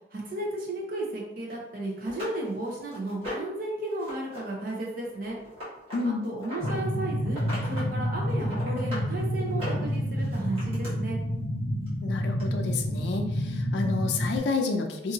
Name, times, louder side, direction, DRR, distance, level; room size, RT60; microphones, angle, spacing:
voice 1, 0.1-5.4 6.0-7.4 7.7-11.2, right 2 dB, 50° right, -2 dB, 0.7 m, -34 dB
sound 1, 1.5-1.6 2.1-3.6 4.0-4.4 4.7-6.8 7.3-7.9 8.2-9.1 9.5-10.9 11.9-12.0 12.4-12.5, left 1 dB, 30° right, 1.2 m, -39 dB
voice 2, 5.9-6.3 12.0-15.1, left 4 dB, 65° left, 3 dB, 0.4 m, -30 dB
sound 2, 6.6-14.4, equal, 35° left, 0.9 m, -29 dB
2.7 x 2.5 x 2.7 m, 0.87 s
head